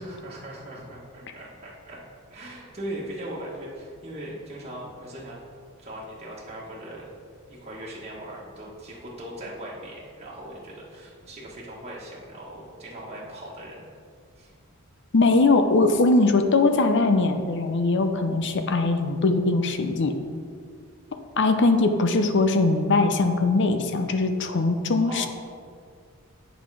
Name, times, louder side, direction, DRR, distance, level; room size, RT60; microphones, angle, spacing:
voice 1, 0.0-5.4 5.8-7.0 7.5-13.8 14.4-14.5 25.0-25.3, right 1 dB, 30° right, -6 dB, 1.4 m, -39 dB
voice 2, 15.1-20.2 21.4-25.3, left 3 dB, 55° left, 7 dB, 0.7 m, -21 dB
8.0 x 6.0 x 4.8 m, 2.2 s
head